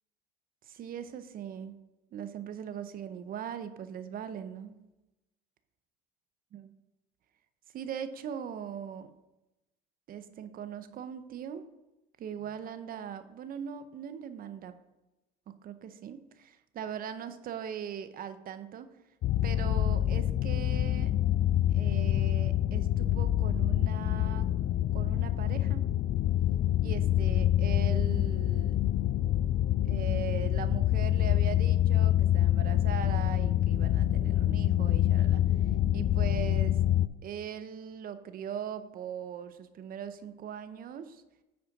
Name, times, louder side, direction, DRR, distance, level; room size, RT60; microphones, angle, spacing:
voice 1, 0.6-1.8 2.1-4.8 6.5-6.7 7.7-9.1 10.1-11.7 12.2-14.8 15.5-18.9 19.4-21.2 21.7-24.5 24.9-25.9 26.8-28.8 29.8-35.4 35.9-36.8 37.2-41.2, right 8 dB, 50° right, 11 dB, 0.7 m, -40 dB
sound 1, 19.2-37.1, left 12 dB, 50° left, 0.4 m, -26 dB
9.5 x 4.4 x 5.2 m, 1.0 s
supercardioid pair, 90°, 19 cm